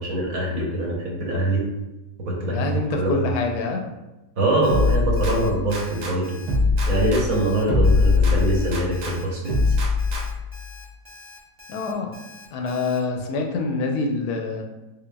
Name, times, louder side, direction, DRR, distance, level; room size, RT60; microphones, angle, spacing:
voice 1, 0.0-1.6 2.2-3.3 4.4-6.4 6.9-9.7, right 1 dB, 65° right, -2 dB, 1.2 m, -24 dB
voice 2, 2.4-3.8 11.7-12.2 12.5-14.7, left 3 dB, 80° left, 3 dB, 1.1 m, -26 dB
Alarm, 4.6-13.0, left 2 dB, 40° right, 0.5 m, -45 dB
sound 1, 4.7-6.1 6.5-9.1 9.5-10.5, left 3 dB, 80° right, 1.3 m, -21 dB
3.9 x 3.4 x 2.2 m, 1.0 s
omnidirectional pair, 1.7 m